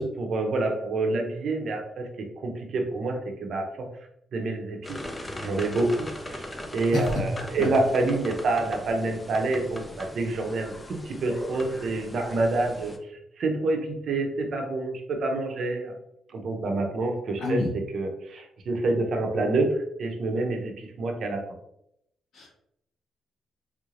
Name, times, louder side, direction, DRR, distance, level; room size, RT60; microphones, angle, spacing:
voice 1, 0.0-3.9 4.3-15.9 16.3-21.4, right 2 dB, 60° right, 3 dB, 0.7 m, -28 dB
sound 1, 4.8-13.0, left 1 dB, 15° left, 0.4 m, -39 dB
voice 2, 6.9-7.2 7.6-7.7 17.4-17.7 22.3-22.5, left 2 dB, 70° left, -4 dB, 1.3 m, -27 dB
3.4 x 3.2 x 2.5 m, 0.76 s
cardioid pair, 135°, 0 cm